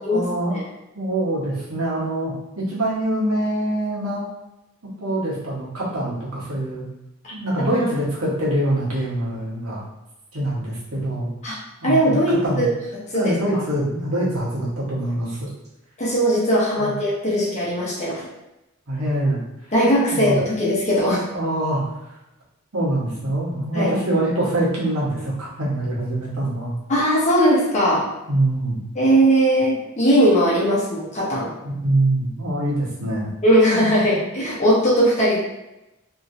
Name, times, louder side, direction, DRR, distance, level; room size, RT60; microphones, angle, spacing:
voice 1, 0.1-0.6 0.9-4.3 5.0-6.8 7.3-9.8 10.3-11.3 11.8-12.7 13.1-15.5 16.8-16.9 18.9-19.4 20.1-20.4 21.3-22.0 22.7-26.7 28.3-28.8 31.6-33.3, right 1 dB, 80° right, -6 dB, 1.2 m, -24 dB
voice 2, 11.8-12.7 13.1-13.4 16.0-18.2 19.7-21.2 23.7-23.9 26.9-28.0 29.0-31.5 33.4-35.4, equal, 35° left, -6 dB, 0.7 m, -19 dB
2.9 x 2.7 x 2.6 m, 0.92 s
head